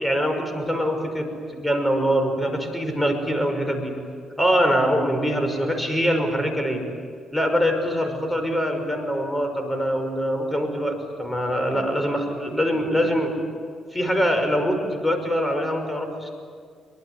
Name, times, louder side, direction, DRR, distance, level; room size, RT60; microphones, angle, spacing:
voice 1, 0.0-3.9 4.4-6.8 7.3-13.3 13.9-16.3, equal, 10° left, 5 dB, 5.8 m, -23 dB
25.5 x 24.0 x 9.8 m, 2.1 s
cardioid pair, 90°, 0 cm